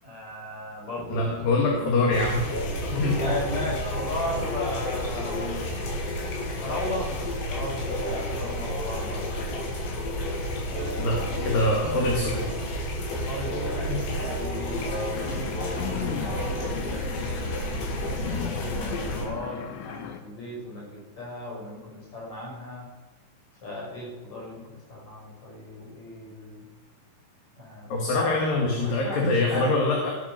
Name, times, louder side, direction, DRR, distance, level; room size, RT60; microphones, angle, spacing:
voice 1, 0.0-2.3 3.2-5.9 6.6-7.1 7.5-9.6 10.7-11.4 11.9-12.3 13.3-17.6 18.2-22.9 23.6-26.7 27.6-28.4 28.8-29.8, left 1 dB, 40° left, -4 dB, 6.3 m, -36 dB
sound 1, 1.0-16.7, equal, 25° left, 5.2 m, -38 dB
voice 2, 1.1-2.4 2.9-3.2 11.0-11.2 11.4-12.4 13.5-13.6 13.9-14.0 27.9-30.1, left 2 dB, 55° left, -1 dB, 3.2 m, -24 dB
sound 2, 2.1-19.2, left 1 dB, 75° left, 4.6 m, -31 dB
sound 3, 15.2-20.2, left 10 dB, 90° left, 3.6 m, -37 dB
16.0 x 8.7 x 6.6 m, 1.1 s
omnidirectional pair, 5.4 m